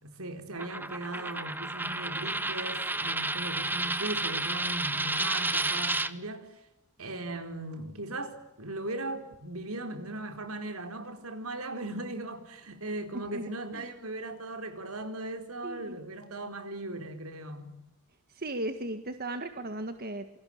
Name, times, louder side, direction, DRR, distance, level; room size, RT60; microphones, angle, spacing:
voice 1, 0.0-6.5 7.0-17.8, right 2 dB, 75° right, 4.4 m, -38 dB
Coin (dropping), 0.6-6.1, right 2 dB, 10° right, 1.1 m, -31 dB
voice 2, 15.6-16.0 18.3-20.3, right 1 dB, 45° right, 1.8 m, -36 dB
28.5 x 22.5 x 8.8 m
head